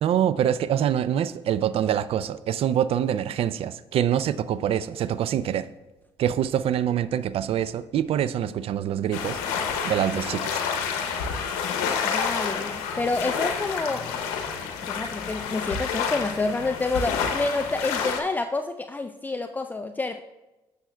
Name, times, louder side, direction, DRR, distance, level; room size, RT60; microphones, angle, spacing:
voice 1, 0.0-5.7 6.2-9.4 9.8-10.6, right 10 dB, 60° right, 15 dB, 0.4 m, -25 dB
sound 1, 9.1-18.2, left 6 dB, 90° left, 0.7 m, -29 dB
voice 2, 12.0-14.2 14.8-20.2, left 3 dB, 15° left, 7 dB, 0.4 m, -28 dB
11.5 x 6.9 x 2.2 m, 1.1 s
supercardioid pair, 65°, 11 cm